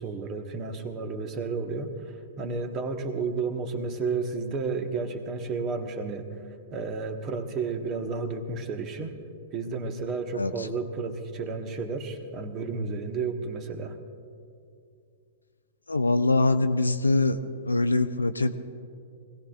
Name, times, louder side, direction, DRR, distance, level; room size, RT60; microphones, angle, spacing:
voice 1, 0.0-1.9 2.4-6.2 6.7-9.2 9.5-14.0, right 4 dB, 30° right, 6 dB, 1.4 m, -32 dB
voice 2, 10.3-10.7 15.9-17.4 17.7-18.5, left 2 dB, 80° left, 8 dB, 0.6 m, -23 dB
24.5 x 17.0 x 2.5 m, 2.5 s
figure-of-eight pair, 105°, 0 cm